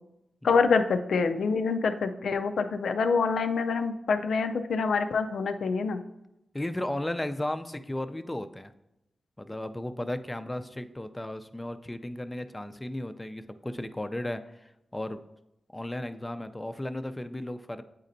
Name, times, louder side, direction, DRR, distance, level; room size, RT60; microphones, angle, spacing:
voice 1, 0.4-6.0, left 4 dB, 80° left, 9 dB, 0.4 m, -26 dB
voice 2, 6.5-8.7 9.4-15.2 15.7-17.8, left 1 dB, 20° left, 9 dB, 0.4 m, -35 dB
8.9 x 4.1 x 2.6 m, 0.88 s
cardioid pair, 50°, 0 cm